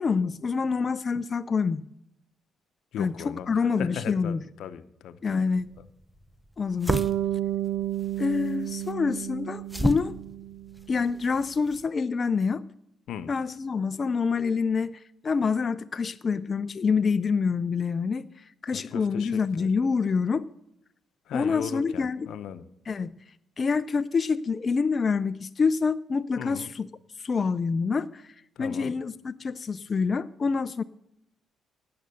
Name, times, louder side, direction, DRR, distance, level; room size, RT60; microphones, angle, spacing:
voice 1, 0.0-1.8 3.0-4.4 5.2-5.7 6.6-7.0 8.2-10.2 10.9-12.6 13.3-20.5 21.3-22.3 22.9-23.1 23.6-26.9 27.2-30.8, left 5 dB, 40° left, 11 dB, 0.5 m, -27 dB
voice 2, 2.9-5.4 5.8-5.9 13.1-13.3 18.7-19.7 21.3-22.7 26.4-26.7 28.6-29.0, left 9 dB, 80° left, 12 dB, 0.8 m, -38 dB
sound 1, 5.5-11.9, equal, ahead, 0.7 m, -35 dB
Bass guitar, 6.9-11.0, right 12 dB, 80° right, 0.4 m, -31 dB
17.5 x 7.8 x 6.9 m, 0.77 s
cardioid pair, 90°, 0 cm